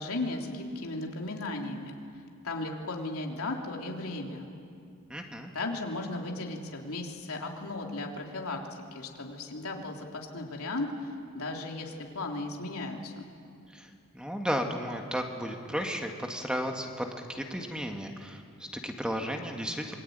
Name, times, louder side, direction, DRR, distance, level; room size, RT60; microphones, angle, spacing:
voice 1, 0.0-1.9 2.4-4.5 5.5-13.3, left 2 dB, 85° left, 1 dB, 3.3 m, -36 dB
voice 2, 5.1-5.5 13.7-20.0, equal, 5° right, 3 dB, 1.9 m, -34 dB
26.5 x 23.5 x 9.4 m, 2.5 s
head